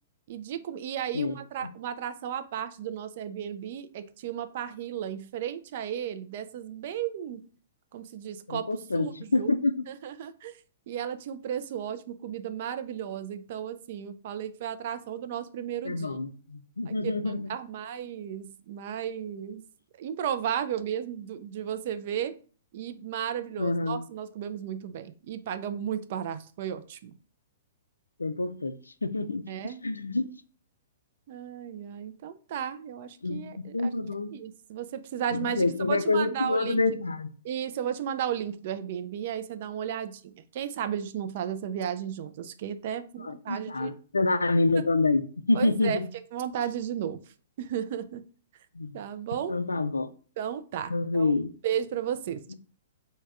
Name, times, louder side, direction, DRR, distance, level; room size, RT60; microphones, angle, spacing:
voice 1, 0.3-7.4 7.9-8.7 8.9-9.5 9.9-10.5 10.9-16.2 16.9-17.0 17.3-19.6 20.0-22.3 22.7-27.1 29.5-29.8 31.3-33.9 34.3-36.8 37.4-43.9 45.5-46.0 46.3-47.2 47.6-48.2 48.9-49.6 50.4-51.3 51.6-52.5, right 9 dB, 45° right, 10 dB, 0.3 m, -34 dB
voice 2, 8.5-9.7 15.8-17.5 23.6-24.0 28.2-28.7 29.0-30.2 33.2-34.3 35.3-37.3 43.2-46.1 48.7-49.0 49.5-50.1 50.9-51.5, left 3 dB, 75° left, 10 dB, 0.3 m, -27 dB
3.4 x 2.2 x 3.2 m, 0.40 s
figure-of-eight pair, 110°, 0 cm